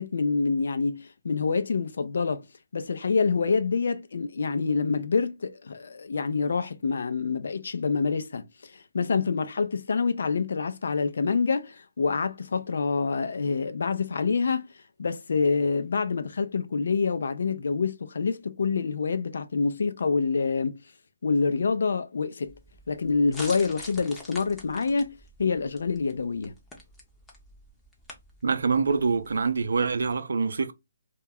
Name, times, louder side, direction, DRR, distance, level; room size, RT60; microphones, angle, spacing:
voice 1, 0.0-2.5 2.7-14.7 15.0-20.8 21.2-22.5 22.9-26.5, left 4 dB, 70° left, 0.3 m, -27 dB
sound 1, 22.5-30.1, left 1 dB, 5° left, 0.6 m, -46 dB
voice 2, 28.4-30.7, right 4 dB, 75° right, 0.4 m, -25 dB
2.2 x 2.1 x 3.4 m
hypercardioid pair, 160°, 0 cm